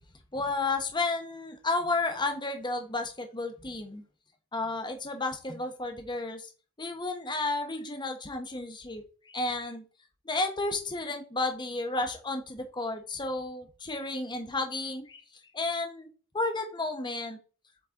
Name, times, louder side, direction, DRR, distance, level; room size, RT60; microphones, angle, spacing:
voice 1, 0.3-4.0 4.5-6.5 6.8-9.8 10.2-15.2 15.5-16.1 16.3-17.4, left 3 dB, 20° left, 5 dB, 1.1 m, -32 dB
7.9 x 4.3 x 3.8 m, 0.36 s
head